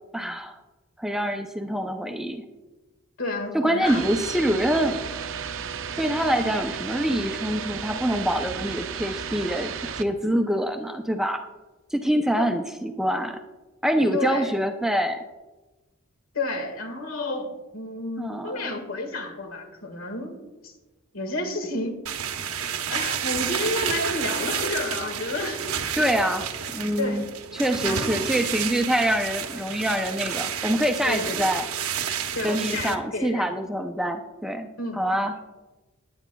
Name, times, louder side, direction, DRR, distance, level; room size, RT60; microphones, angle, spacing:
voice 1, 0.1-0.6 1.0-2.4 3.5-5.4 6.0-11.4 11.9-13.4 13.8-15.2 18.2-18.7 26.0-27.3 27.5-31.6 32.4-34.7 34.9-35.3, equal, ahead, 5 dB, 0.5 m, -25 dB
voice 2, 3.2-4.0 12.4-12.5 14.1-14.5 16.3-20.8 21.1-22.0 22.9-25.6 27.0-27.2 27.8-28.3 31.0-31.5 32.3-33.5 34.8-35.2, left 2 dB, 70° left, 5 dB, 1.7 m, -31 dB
sound 1, 3.8-10.0, right 7 dB, 60° right, 0.6 m, -33 dB
sound 2, 22.1-33.0, right 8 dB, 85° right, 0.9 m, -30 dB
18.0 x 9.4 x 2.3 m, 1.1 s
head